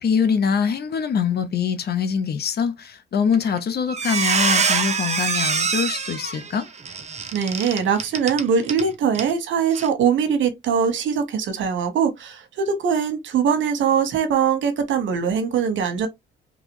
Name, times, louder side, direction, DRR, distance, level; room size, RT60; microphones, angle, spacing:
voice 1, 0.0-6.7, left 6 dB, 55° left, 0.9 m, -23 dB
Squeak, 3.3-3.6 3.9-8.8 9.1-9.3 9.7-9.9, right 5 dB, 35° right, 0.9 m, -24 dB
voice 2, 7.3-16.1, right 7 dB, 70° right, 1.3 m, -22 dB
3.9 x 3.2 x 3.1 m
cardioid pair, 90°, 20 cm